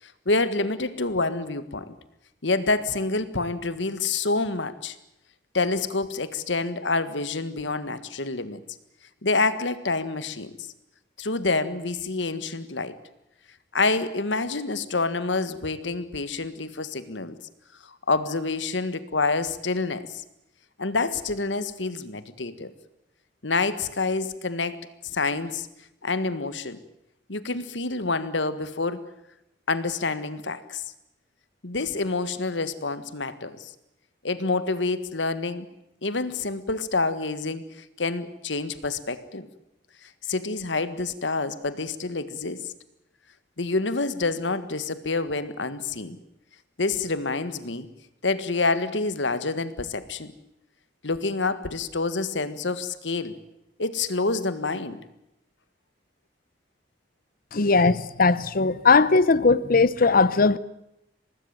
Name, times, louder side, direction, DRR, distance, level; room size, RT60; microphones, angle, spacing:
voice 1, 0.0-1.9 2.4-4.9 5.5-8.6 9.2-10.5 11.2-13.0 13.7-17.4 17.8-20.2 20.8-22.7 23.4-25.7 26.0-26.8 27.3-29.0 29.7-30.8 31.6-33.7 34.2-35.7 36.0-39.5 40.0-42.7 43.6-46.2 46.8-47.9 48.2-50.3 51.0-53.3 53.8-55.0, left 3 dB, 80° left, 1.7 m, -27 dB
voice 2, 57.5-60.6, left 4 dB, 50° left, 0.8 m, -19 dB
24.5 x 19.0 x 9.0 m
head